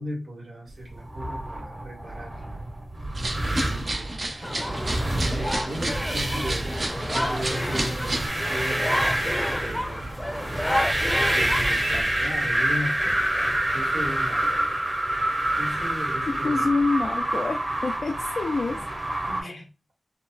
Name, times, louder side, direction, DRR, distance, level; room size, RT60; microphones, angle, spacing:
voice 1, 0.0-2.7 3.2-4.1 5.4-6.8 7.1-10.6 11.3-14.8 15.6-16.7 18.7-18.8 19.3-19.6, equal, 85° right, -4 dB, 1.4 m, -37 dB
sound 1, 0.9-19.4, right 1 dB, 35° right, 1.2 m, -27 dB
sound 2, 3.1-8.3, right 1 dB, 60° right, 0.7 m, -31 dB
voice 2, 3.6-3.9 16.3-18.8 19.4-19.6, left 3 dB, 80° left, 2 dB, 0.3 m, -27 dB
sound 3, 4.4-12.0, left 1 dB, 15° left, 0.6 m, -31 dB
3.9 x 2.1 x 2.2 m, 0.29 s
wide cardioid pair, 60°, 0 cm